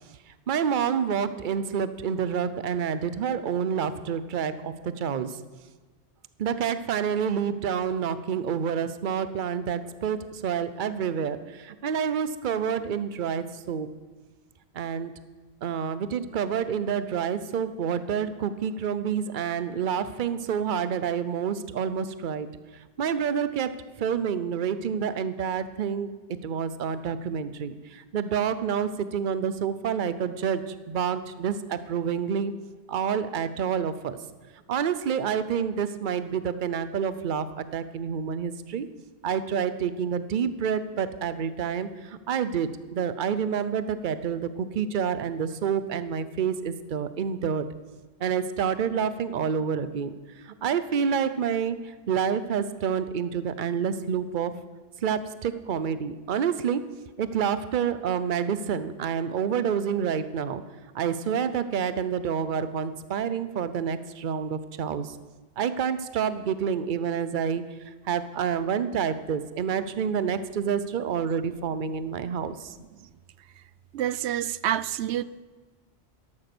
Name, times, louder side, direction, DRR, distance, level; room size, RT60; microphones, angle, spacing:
voice 1, 0.5-5.4 6.4-13.9 14.7-15.1 15.6-22.5 22.7-23.7 24.0-26.1 26.4-32.6 32.9-34.2 34.7-38.9 39.2-47.7 48.2-50.1 50.4-54.5 55.0-56.9 57.2-60.6 60.9-65.2 65.6-72.7, right 7 dB, 50° right, 13 dB, 0.8 m, -28 dB
voice 2, 73.9-75.2, right 12 dB, 85° right, 18 dB, 0.8 m, -28 dB
13.0 x 12.0 x 6.1 m, 1.3 s
omnidirectional pair, 1.1 m